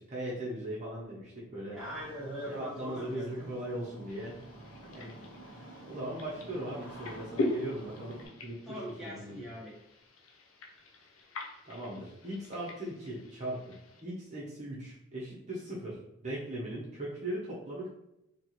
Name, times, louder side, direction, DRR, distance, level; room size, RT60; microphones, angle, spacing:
voice 1, 0.0-1.8 2.5-4.4 4.8-5.1 5.9-9.4 11.7-13.8 14.0-17.9, right 1 dB, 35° right, -6 dB, 0.9 m, -39 dB
Engine starting, 1.7-8.3, right 1 dB, 55° left, 1.3 m, -50 dB
voice 2, 1.7-3.4 8.7-9.7, equal, ahead, -8 dB, 1.2 m, -41 dB
sound 1, 4.1-14.0, left 2 dB, 80° left, 0.6 m, -42 dB
4.5 x 3.0 x 3.0 m, 0.86 s
head